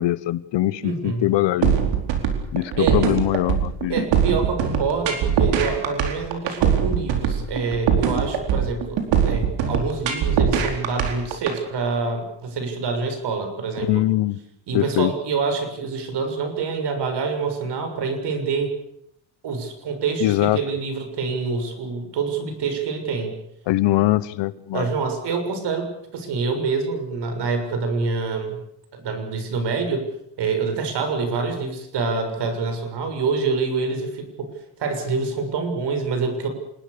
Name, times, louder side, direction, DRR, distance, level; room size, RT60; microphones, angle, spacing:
voice 1, 0.0-1.8 2.5-4.1 13.8-14.4 14.7-15.1 20.2-20.6 23.7-24.9, left 15 dB, 80° left, 18 dB, 1.1 m, -22 dB
voice 2, 0.8-1.3 2.8-3.1 3.9-9.0 9.2-14.0 14.7-18.7 19.4-23.3 24.7-28.6 28.9-30.1 30.4-34.5 34.8-36.5, right 4 dB, 70° right, 6 dB, 7.0 m, -26 dB
sound 1, 1.6-11.6, right 7 dB, 85° right, 4.6 m, -21 dB
26.5 x 20.5 x 6.9 m, 0.76 s
cardioid pair, 90°, 43 cm